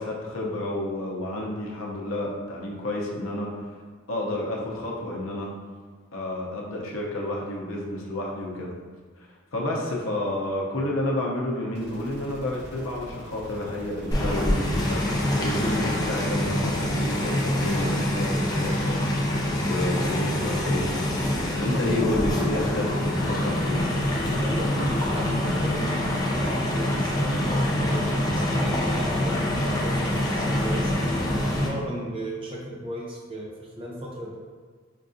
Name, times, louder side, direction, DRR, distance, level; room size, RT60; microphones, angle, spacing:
voice 1, 0.0-3.5 4.1-5.5 6.1-8.7 9.2-23.8, left 1 dB, 75° left, -2 dB, 0.6 m, -30 dB
sound 1, 11.7-27.2, equal, 55° right, 0.8 m, -45 dB
sound 2, 14.1-31.7, left 1 dB, 20° left, 0.4 m, -25 dB
voice 2, 24.4-28.0 28.3-31.0 31.4-34.4, equal, 25° right, -4 dB, 0.6 m, -35 dB
4.6 x 2.4 x 2.6 m, 1.5 s
head